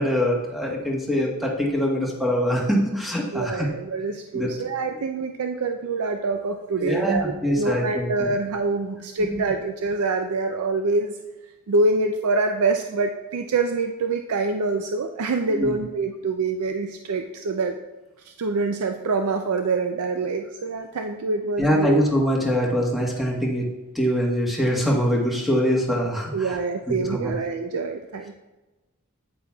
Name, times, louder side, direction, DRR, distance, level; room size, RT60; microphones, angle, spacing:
voice 1, 0.0-3.7 4.3-4.5 6.8-8.3 9.3-9.4 15.5-15.8 21.6-23.7 23.9-26.6 26.9-27.3, equal, ahead, -3 dB, 1.2 m, -23 dB
voice 2, 3.3-11.1 11.7-17.8 18.2-22.0 26.3-28.4, right 3 dB, 75° right, 5 dB, 0.5 m, -25 dB
8.6 x 8.5 x 2.3 m, 1.1 s
head